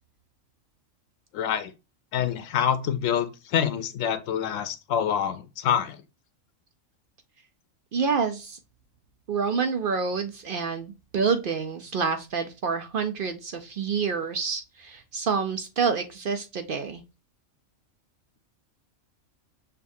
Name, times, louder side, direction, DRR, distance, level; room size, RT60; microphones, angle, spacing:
voice 1, 1.3-1.7 2.1-6.0, left 9 dB, 90° left, 1.0 m, -26 dB
voice 2, 7.9-8.6 9.3-17.0, right 5 dB, 55° right, 0.6 m, -28 dB
6.6 x 2.4 x 2.6 m
omnidirectional pair, 1.3 m